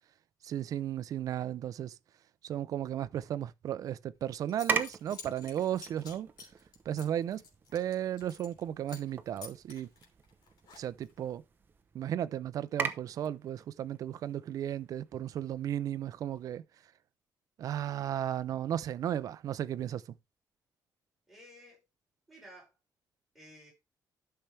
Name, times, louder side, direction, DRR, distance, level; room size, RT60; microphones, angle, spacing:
voice 1, 0.4-1.9 2.4-6.3 6.9-7.4 7.7-9.9 10.8-11.4 11.9-16.6 17.6-20.0, right 10 dB, 55° right, 0.6 m, -35 dB
Zipper (clothing) / Coin (dropping), 4.1-4.2 4.5-8.6 8.9-9.1 9.4-11.2, left 5 dB, 80° left, 2.9 m, -50 dB
sound 1, 4.5-16.6, right 5 dB, 30° right, 0.8 m, -42 dB
voice 2, 21.3-21.9 22.3-22.7 23.3-23.7, equal, 5° right, 5.7 m, -54 dB
12.0 x 5.7 x 3.4 m
cardioid pair, 175°, 7 cm